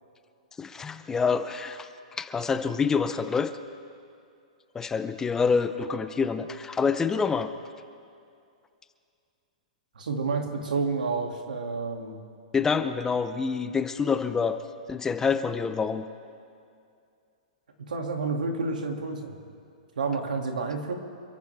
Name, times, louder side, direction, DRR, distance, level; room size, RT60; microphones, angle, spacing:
voice 1, 0.6-3.5 4.7-7.5 12.5-14.6 14.9-16.0, left 5 dB, 10° left, 10 dB, 0.6 m, -27 dB
voice 2, 9.9-12.2 17.9-19.3 20.0-20.9, right 4 dB, 90° right, 2 dB, 2.6 m, -29 dB
27.5 x 14.0 x 3.5 m, 2.4 s
hypercardioid pair, 140°, 4 cm